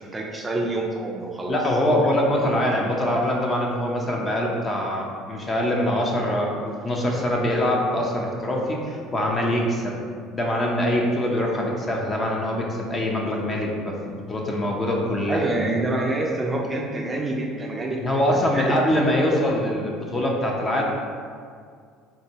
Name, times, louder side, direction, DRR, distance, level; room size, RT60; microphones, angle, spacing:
voice 1, 0.0-1.6 15.3-18.0 18.5-18.8, right 2 dB, 20° right, -1 dB, 0.4 m, -26 dB
voice 2, 1.5-10.0 10.3-15.4 18.0-20.8, left 1 dB, 30° left, -1 dB, 0.6 m, -24 dB
3.9 x 2.2 x 2.8 m, 2.1 s
supercardioid pair, 85°, 0 cm